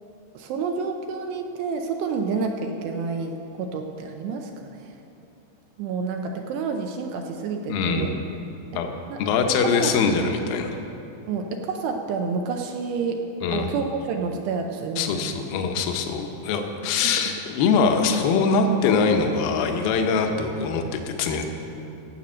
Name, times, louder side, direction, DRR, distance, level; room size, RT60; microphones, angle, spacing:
voice 1, 0.3-5.0 5.8-8.1 8.7-8.8 9.1-9.2 9.5-9.9 11.3-13.2 13.5-15.5 16.8-17.0, right 5 dB, 80° right, 3 dB, 2.6 m, -29 dB
voice 2, 7.7-8.2 8.7-10.8 13.4-13.7 15.0-21.4, left 5 dB, 75° left, 4 dB, 2.3 m, -23 dB
16.0 x 8.2 x 6.2 m, 2.8 s
omnidirectional pair, 5.3 m